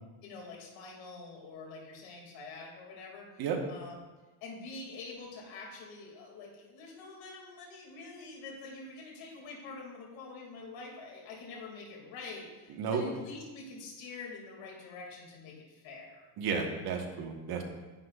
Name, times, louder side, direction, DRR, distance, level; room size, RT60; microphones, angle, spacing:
voice 1, 0.2-4.0 4.4-16.3, left 3 dB, 60° left, -2 dB, 2.5 m, -46 dB
voice 2, 16.4-17.6, right 6 dB, 45° right, 2 dB, 1.4 m, -32 dB
10.5 x 8.5 x 2.4 m, 1.2 s
cardioid pair, 145°, 50 cm